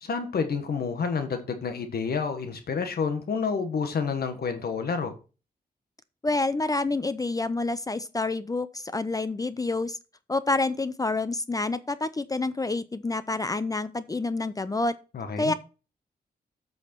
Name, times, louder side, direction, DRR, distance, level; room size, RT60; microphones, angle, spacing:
voice 1, 0.0-5.2 15.1-15.5, left 5 dB, 75° left, 1.4 m, -29 dB
voice 2, 6.2-10.0 10.3-14.9 15.4-15.5, left 2 dB, 20° left, 0.5 m, -28 dB
8.1 x 6.4 x 4.4 m
wide cardioid pair, 130°, 16 cm